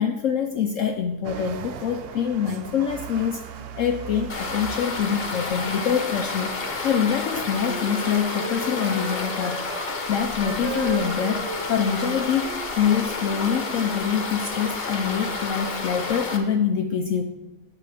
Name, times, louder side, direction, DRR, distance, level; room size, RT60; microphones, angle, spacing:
voice 1, 0.0-3.4 3.8-9.6 10.1-17.2, left 7 dB, 65° left, 5 dB, 0.8 m, -25 dB
sound 1, 1.2-8.0, right 8 dB, 75° right, 0.5 m, -40 dB
sound 2, 4.3-16.4, left 3 dB, 45° left, 1.0 m, -30 dB
Wind instrument woodwind instrument, 6.7-9.9 10.4-13.5, right 3 dB, 55° right, 1.2 m, -36 dB
8.9 x 4.9 x 6.2 m, 1.1 s
omnidirectional pair, 1.7 m